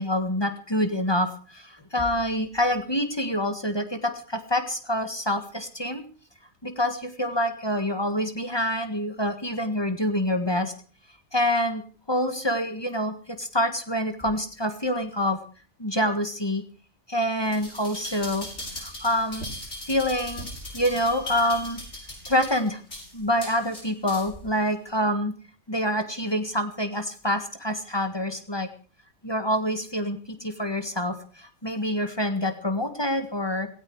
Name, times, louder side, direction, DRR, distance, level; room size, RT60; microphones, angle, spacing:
voice 1, 0.0-6.0 6.6-10.7 11.3-11.8 12.1-15.4 15.8-16.6 17.1-18.5 18.8-19.5 19.9-20.5 20.7-21.8 22.3-22.8 23.1-25.3 25.7-28.7 29.2-33.7, left 1 dB, 20° left, 8 dB, 1.7 m, -26 dB
sound 1, 17.4-24.4 24.9-25.0, left 1 dB, 60° left, 7.3 m, -38 dB
17.0 x 17.0 x 4.8 m, 0.39 s
omnidirectional pair, 1.4 m